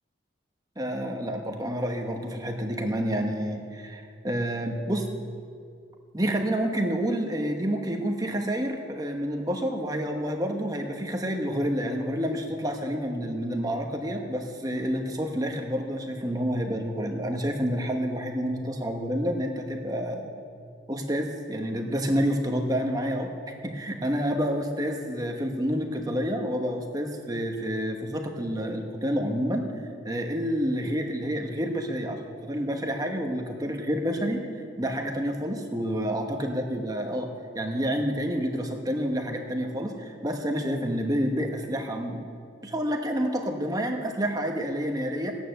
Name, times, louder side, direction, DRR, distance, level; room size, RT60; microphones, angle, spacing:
voice 1, 0.8-5.0 6.1-20.3 20.9-23.3 23.6-29.7 30.0-34.4 34.8-42.3 42.6-45.3, equal, 20° right, 3 dB, 1.1 m, -29 dB
15.5 x 9.1 x 6.6 m, 2.3 s
head